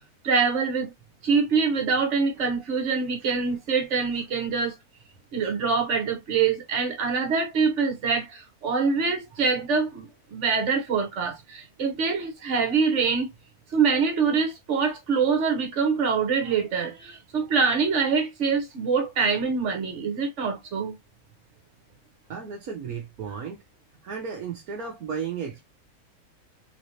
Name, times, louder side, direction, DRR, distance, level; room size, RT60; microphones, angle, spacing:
voice 1, 0.2-0.9 1.2-4.7 5.3-10.1 10.3-13.3 13.7-20.9, right 5 dB, 55° right, 1.5 m, -24 dB
voice 2, 22.3-23.6 24.0-25.6, right 6 dB, 75° right, 1.4 m, -34 dB
4.0 x 3.2 x 2.8 m
omnidirectional pair, 1.6 m